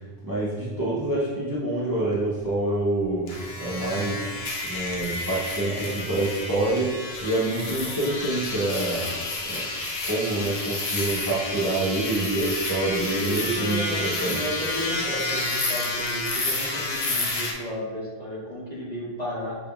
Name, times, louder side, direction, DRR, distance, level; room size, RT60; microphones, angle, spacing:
voice 1, 0.0-3.3 3.6-9.7 10.0-14.4, right 2 dB, 20° right, -8 dB, 0.7 m, -27 dB
sound 1, 3.3-17.5, left 2 dB, 75° left, 1.0 m, -30 dB
voice 2, 13.0-19.6, equal, 40° left, -8 dB, 1.7 m, -33 dB
5.9 x 3.4 x 2.4 m, 1.5 s
omnidirectional pair, 1.1 m